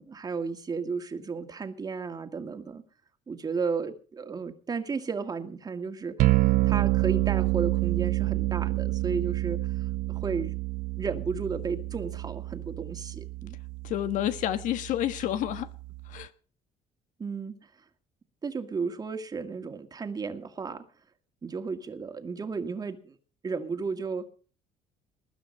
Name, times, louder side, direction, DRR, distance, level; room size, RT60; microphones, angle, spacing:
voice 1, 0.0-2.8 3.3-10.5 11.0-13.5 17.2-17.5 18.4-20.9 21.4-23.1 23.4-24.3, right 5 dB, 30° right, 2.0 m, -33 dB
sound 1, 6.2-16.2, right 20 dB, 75° right, 0.6 m, -28 dB
voice 2, 13.8-15.7 16.0-16.3, left 12 dB, 70° left, 1.3 m, -29 dB
20.0 x 9.4 x 5.5 m
cardioid pair, 110°, 14 cm